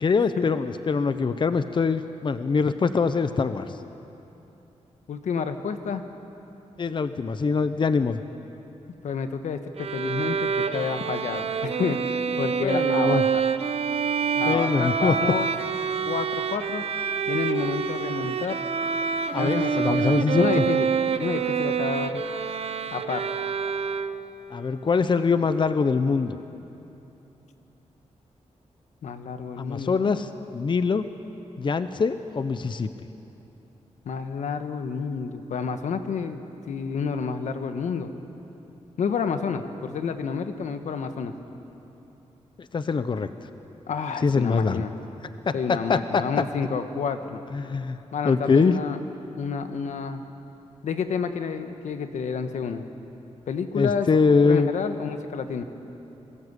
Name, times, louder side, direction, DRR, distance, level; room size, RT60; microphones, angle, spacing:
voice 1, 0.0-3.8 6.8-8.2 12.6-13.2 14.4-15.1 19.3-20.6 24.5-26.4 29.6-31.0 31.6-32.9 42.6-43.3 44.2-44.8 45.4-46.3 47.5-48.0 48.2-48.8 53.7-54.7, left 5 dB, 40° left, 11 dB, 0.8 m, -23 dB
voice 2, 5.1-6.0 9.0-12.0 12.4-13.4 14.3-15.5 16.1-16.8 17.3-18.6 19.4-20.9 21.2-22.2 22.9-23.3 29.0-30.0 34.0-36.4 36.7-38.1 39.0-41.3 43.9-44.9 45.5-47.4 48.1-49.0 49.4-50.2 50.8-52.8 53.5-55.6, left 6 dB, 90° left, 8 dB, 1.4 m, -29 dB
Bowed string instrument, 9.8-24.4, right 6 dB, 60° right, 1.0 m, -27 dB
26.5 x 21.5 x 8.3 m, 3.0 s
wide cardioid pair, 105°, 12 cm